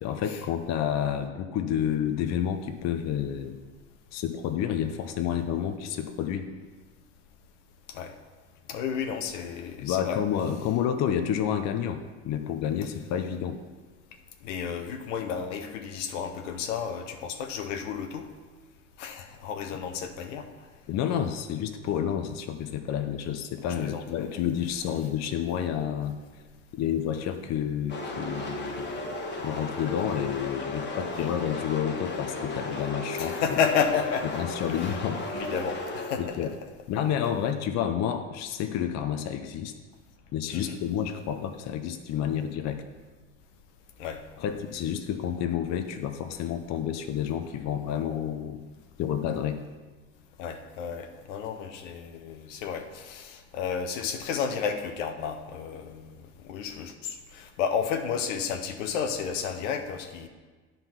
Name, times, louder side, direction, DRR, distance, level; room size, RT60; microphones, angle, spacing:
voice 1, 0.0-3.5 4.1-6.5 9.8-13.6 20.9-26.2 26.7-28.9 29.4-33.6 34.3-35.2 36.2-36.5 36.9-39.7 40.3-42.8 44.4-48.6 49.0-49.6, left 9 dB, 45° left, 7 dB, 0.7 m, -29 dB
voice 2, 8.7-10.2 14.4-18.3 19.0-20.5 23.6-24.4 33.2-34.4 34.7-35.0 35.3-36.4 40.5-40.8 44.0-44.2 50.4-56.1 56.4-60.3, left 7 dB, 75° left, 6 dB, 1.0 m, -32 dB
sound 1, 27.9-36.5, left 2 dB, 30° left, 1.4 m, -35 dB
10.5 x 4.0 x 5.8 m, 1.4 s
hypercardioid pair, 80°, 37 cm